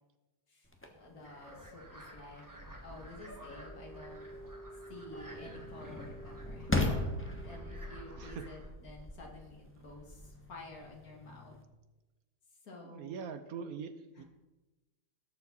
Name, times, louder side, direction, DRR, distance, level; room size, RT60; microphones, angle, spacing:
sound 1, 0.7-11.6, left 2 dB, 10° left, 0.9 m, -40 dB
voice 1, 0.9-2.4 2.8-4.3 4.9-7.0 7.4-11.6 12.5-13.2 14.1-14.2, left 2 dB, 60° left, 0 dB, 2.4 m, -51 dB
sound 2, 1.2-8.7, right 1 dB, 10° right, 1.5 m, -55 dB
sound 3, 3.4-8.3, right 1 dB, 30° left, 1.9 m, -52 dB
voice 2, 8.2-8.5 12.8-14.2, right 6 dB, 65° right, 10 dB, 1.1 m, -43 dB
18.0 x 7.1 x 4.1 m, 1.1 s
omnidirectional pair, 1.8 m